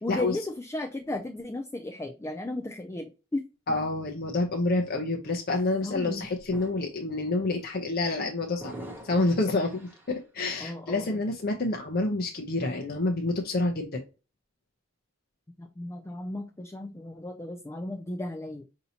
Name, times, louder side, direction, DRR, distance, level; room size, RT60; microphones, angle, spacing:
voice 1, 0.0-3.8 5.8-6.3 10.6-11.2 15.6-18.6, left 1 dB, 15° left, 4 dB, 0.4 m, -35 dB
voice 2, 3.7-8.7 9.0-14.0, left 2 dB, 50° left, 2 dB, 0.7 m, -28 dB
sound 1, 5.6-5.7 6.3-7.0 7.3-7.6 8.6-10.2, right 1 dB, 10° right, 0.8 m, -45 dB
5.3 x 2.8 x 2.7 m, 0.30 s
head